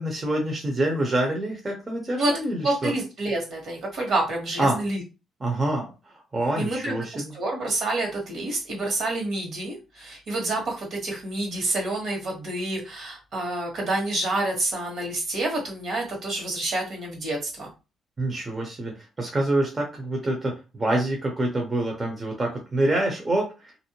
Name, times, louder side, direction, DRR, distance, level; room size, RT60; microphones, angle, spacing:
voice 1, 0.0-2.9 4.6-4.8 5.4-5.9 6.3-7.3 18.2-23.5, right 1 dB, 30° right, 0 dB, 0.8 m, -26 dB
voice 2, 2.6-5.0 6.6-17.7, right 2 dB, 60° right, 0 dB, 1.4 m, -28 dB
2.6 x 2.1 x 2.9 m, 0.29 s
cardioid pair, 90°, 0 cm